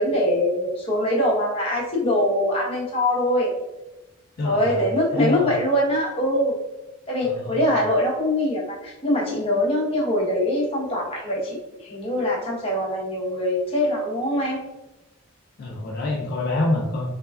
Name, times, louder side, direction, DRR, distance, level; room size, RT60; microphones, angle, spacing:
voice 1, 0.0-3.5 4.4-6.6 7.1-14.6, left 1 dB, 30° left, -5 dB, 0.7 m, -23 dB
voice 2, 4.4-5.5 7.2-7.7 15.6-17.1, left 2 dB, 45° left, -2 dB, 0.3 m, -27 dB
3.1 x 2.2 x 2.3 m, 1.0 s
head